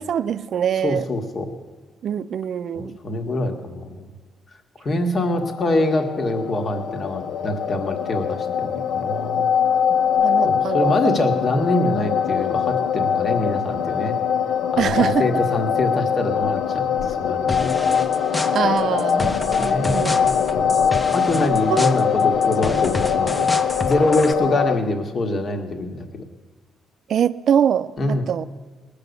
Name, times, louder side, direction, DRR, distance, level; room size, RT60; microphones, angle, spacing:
voice 1, 0.0-1.0 2.0-3.0 10.2-11.1 14.8-15.2 18.5-19.3 19.6-20.3 21.7-21.9 27.1-28.5, right 8 dB, 60° right, 14 dB, 0.5 m, -23 dB
voice 2, 0.8-1.5 2.7-4.1 4.8-9.5 10.4-14.2 14.7-17.7 19.2-19.3 19.6-20.7 21.1-23.5 23.8-26.2 28.0-28.3, left 2 dB, 45° left, 5 dB, 1.7 m, -24 dB
sound 1, 5.3-24.8, left 7 dB, 80° left, 0.7 m, -22 dB
sound 2, 17.5-24.3, left 2 dB, 15° left, 0.9 m, -30 dB
19.5 x 6.8 x 8.1 m, 1.4 s
cardioid pair, 90°, 0 cm